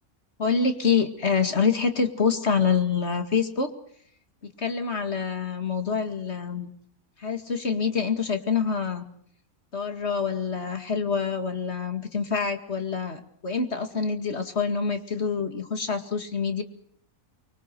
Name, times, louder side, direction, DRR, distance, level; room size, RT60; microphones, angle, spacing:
voice 1, 0.4-3.7 4.4-6.7 7.2-9.0 9.7-16.6, left 5 dB, 45° left, 7 dB, 2.4 m, -26 dB
24.5 x 23.0 x 6.8 m, 0.64 s
omnidirectional pair, 1.5 m